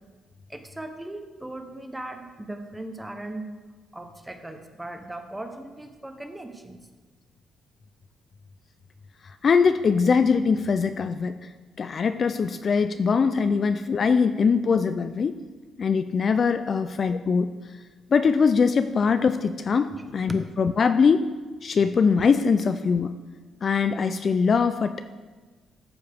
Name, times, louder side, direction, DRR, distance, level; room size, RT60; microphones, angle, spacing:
voice 1, 0.5-3.5 3.9-6.9 16.7-16.8 19.9-20.4, right 1 dB, 10° right, 6 dB, 0.8 m, -38 dB
voice 2, 9.4-11.4 11.8-15.4 15.8-17.5 18.1-21.3 21.6-23.1 23.6-25.1, left 5 dB, 40° left, 10 dB, 0.3 m, -22 dB
13.5 x 7.1 x 3.4 m, 1.3 s
cardioid pair, 140°, 0 cm